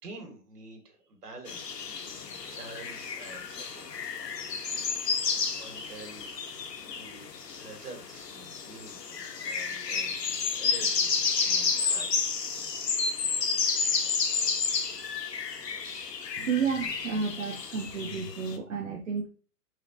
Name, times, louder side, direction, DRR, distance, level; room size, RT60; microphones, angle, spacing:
voice 1, 0.0-3.9 5.0-6.3 6.7-10.2 10.5-12.2, right 3 dB, 70° right, 3 dB, 1.8 m, -48 dB
Morning in the forest european robin and common blackbird, 1.5-18.6, left 5 dB, 80° left, 1.0 m, -31 dB
voice 2, 16.4-19.3, right 5 dB, 55° right, 2 dB, 0.6 m, -31 dB
4.9 x 3.7 x 2.8 m, 0.40 s
hypercardioid pair, 175°, 48 cm